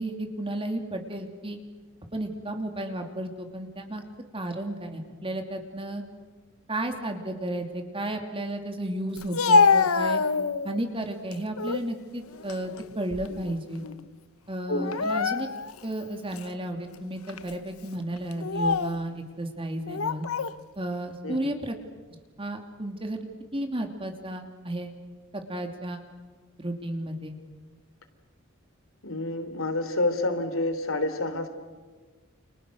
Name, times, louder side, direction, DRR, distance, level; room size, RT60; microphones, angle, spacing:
voice 1, 0.0-1.6 2.1-4.0 4.3-6.0 6.7-10.2 10.6-13.8 14.5-15.5 15.8-20.3 20.8-21.8 22.4-23.2 23.5-24.9 25.3-26.0 26.6-27.4, right 1 dB, 25° right, 4 dB, 2.9 m, -33 dB
Speech, 9.2-10.8 11.3-11.9 12.3-13.5 13.8-14.0 14.8-15.8 16.4-16.5 17.3-17.5 18.3-19.0 19.9-20.6, left 4 dB, 90° left, 1.0 m, -25 dB
voice 2, 14.7-15.0 21.2-21.5 29.0-31.5, left 2 dB, 70° left, 9 dB, 3.3 m, -28 dB
29.5 x 29.5 x 6.6 m, 1.4 s
head